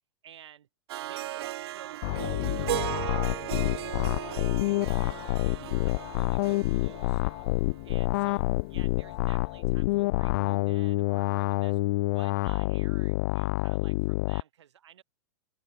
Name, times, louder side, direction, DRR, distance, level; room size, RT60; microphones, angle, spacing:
voice 1, 0.2-0.7 1.0-7.5 7.8-15.0, right 10 dB, 80° right, 7.8 m, -53 dB
Harp, 0.9-8.1, right 14 dB, 65° right, 1.1 m, -36 dB
sound 1, 2.0-14.4, left 21 dB, 50° left, 0.5 m, -28 dB
hypercardioid pair, 145°, 14 cm